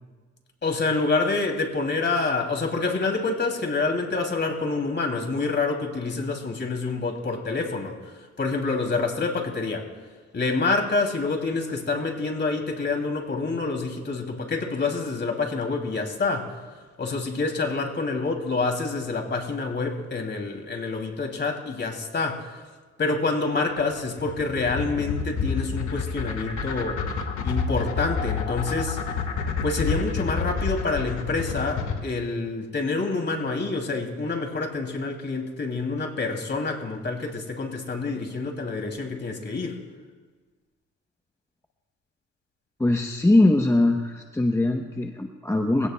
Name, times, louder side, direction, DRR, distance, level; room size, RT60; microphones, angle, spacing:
voice 1, 0.6-9.9 10.3-16.6 17.0-22.6 23.0-27.0 27.4-29.0 29.6-39.8, left 3 dB, 35° left, 2 dB, 2.7 m, -27 dB
sound 1, 23.8-32.0, left 5 dB, 75° left, 1.8 m, -28 dB
voice 2, 42.8-45.9, left 2 dB, 10° left, 3 dB, 0.8 m, -21 dB
22.5 x 17.0 x 2.2 m, 1.4 s
cardioid pair, 90°, 30 cm